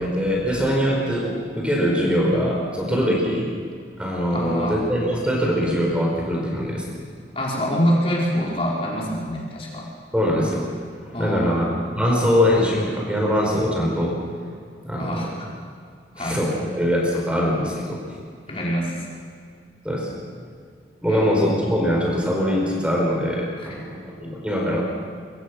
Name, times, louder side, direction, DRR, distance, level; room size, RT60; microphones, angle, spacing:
voice 1, 0.0-3.4 4.0-7.0 10.1-10.7 11.2-14.2 14.8-15.3 16.2-18.0 19.8-20.1 21.0-24.8, equal, 5° right, -2 dB, 4.9 m, -22 dB
voice 2, 4.2-4.8 7.3-9.9 11.1-11.6 15.0-15.5 16.1-16.4 18.5-19.0 21.1-21.4 23.6-23.7, equal, 30° left, -3 dB, 4.6 m, -25 dB
26.5 x 23.0 x 6.3 m, 2.1 s
head